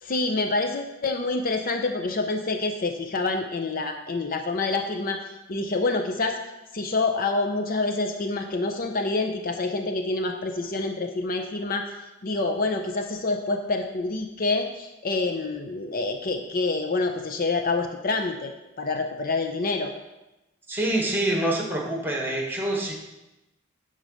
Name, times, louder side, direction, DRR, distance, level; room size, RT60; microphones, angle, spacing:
voice 1, 0.0-5.2 5.5-6.4 6.7-11.8 12.2-19.9, left 3 dB, 45° left, 5 dB, 0.6 m, -27 dB
voice 2, 20.7-22.9, right 1 dB, 10° right, -1 dB, 1.7 m, -26 dB
9.6 x 4.0 x 6.4 m, 0.98 s
head